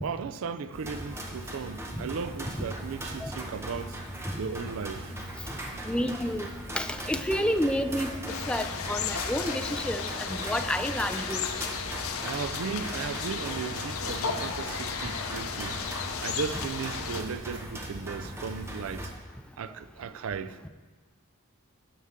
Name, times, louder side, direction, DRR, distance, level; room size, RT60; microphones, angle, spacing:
voice 1, 0.0-4.0 4.4-5.3 12.2-19.1 19.6-20.6, right 6 dB, 70° right, 0.4 m, -36 dB
sound 1, 0.7-19.1, right 1 dB, 10° right, 1.0 m, -39 dB
Wind instrument woodwind instrument, 5.0-8.7 8.9-12.9, right 3 dB, 50° right, 1.5 m, -54 dB
voice 2, 5.9-6.5 6.7-8.1 8.5-11.5, equal, 5° left, 0.4 m, -29 dB
sound 2, 8.3-17.2, left 6 dB, 75° left, 0.7 m, -34 dB
13.0 x 8.5 x 3.7 m
head